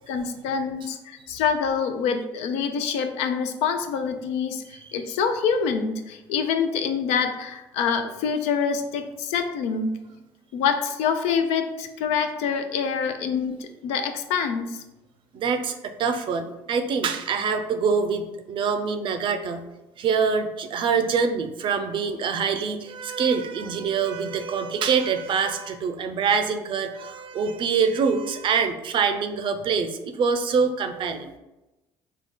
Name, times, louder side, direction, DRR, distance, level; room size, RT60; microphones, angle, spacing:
voice 1, 0.1-10.0 10.5-14.8, left 6 dB, 80° left, 7 dB, 0.4 m, -26 dB
voice 2, 15.3-19.6 20.0-31.3, right 5 dB, 50° right, 8 dB, 0.5 m, -25 dB
3.5 x 2.3 x 3.7 m, 1.0 s
supercardioid pair, 80°, 11 cm